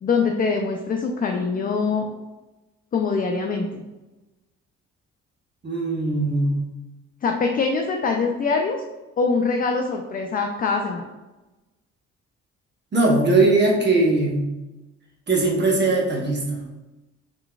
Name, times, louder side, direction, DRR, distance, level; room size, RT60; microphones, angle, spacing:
voice 1, 0.0-2.1 2.9-3.8 7.2-8.8 9.2-11.1, left 4 dB, 30° left, 3 dB, 0.4 m, -23 dB
voice 2, 5.6-6.7 12.9-14.5 15.3-16.6, right 2 dB, 35° right, -2 dB, 0.9 m, -20 dB
3.9 x 3.4 x 2.3 m, 1.1 s
cardioid pair, 90°, 30 cm